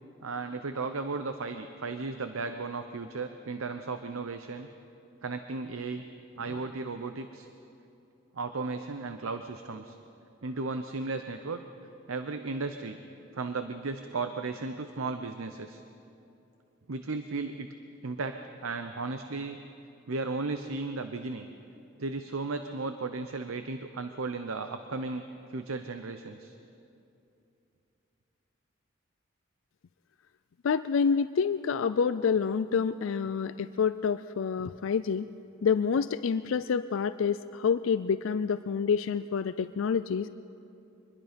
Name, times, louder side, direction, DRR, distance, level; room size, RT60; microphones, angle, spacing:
voice 1, 0.2-4.7 5.2-6.0 6.4-7.5 8.3-10.0 10.4-11.6 12.1-13.0 13.3-15.8 16.9-17.7 18.0-18.4 18.6-19.6 20.1-21.5 22.0-25.2 25.5-26.5, right 3 dB, 90° right, 8 dB, 0.8 m, -35 dB
voice 2, 30.6-35.3 35.6-40.3, left 6 dB, 70° left, 12 dB, 0.4 m, -28 dB
24.0 x 20.5 x 5.2 m, 2.7 s
head